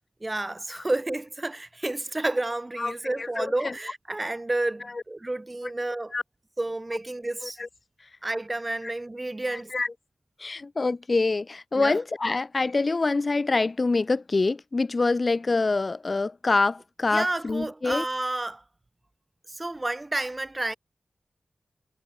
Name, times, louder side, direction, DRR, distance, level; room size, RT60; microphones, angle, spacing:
voice 1, 0.2-6.1 6.6-7.6 8.2-9.7 11.7-12.0 17.1-18.6 19.5-20.8, right 2 dB, 30° right, 7.6 m, -30 dB
voice 2, 2.8-3.7 6.1-6.2 7.6-7.7 8.8-8.9 9.7-9.9 10.4-18.0, left 3 dB, 45° left, 2.2 m, -25 dB
cardioid pair, 50°, 0 cm